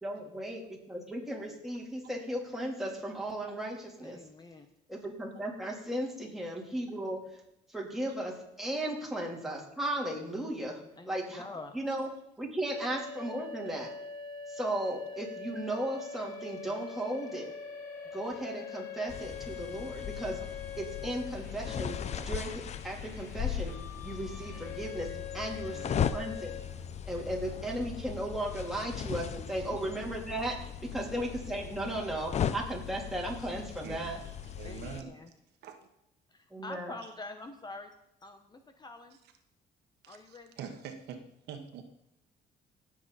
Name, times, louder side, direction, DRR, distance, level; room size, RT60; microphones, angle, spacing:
voice 1, 0.0-4.2 4.9-7.4 7.7-11.4 11.7-12.1 12.4-13.9 14.5-17.5 18.1-20.4 20.8-26.7 27.1-34.2 36.5-36.9, right 1 dB, ahead, -3 dB, 3.5 m, -36 dB
voice 2, 4.0-4.7 11.0-11.7 25.5-26.2 29.7-30.0 31.1-31.3 34.6-35.3 36.3-38.0 38.2-39.2 40.1-40.6, left 2 dB, 25° left, 7 dB, 1.1 m, -46 dB
sound 1, 12.6-26.6, left 6 dB, 70° left, 2.8 m, -44 dB
sound 2, 19.1-35.0, left 8 dB, 40° left, 0.7 m, -38 dB
voice 3, 33.8-35.1 35.6-35.8 40.0-41.8, right 7 dB, 80° right, 6 dB, 1.5 m, -45 dB
17.5 x 7.6 x 4.2 m, 0.82 s
cardioid pair, 110°, 17 cm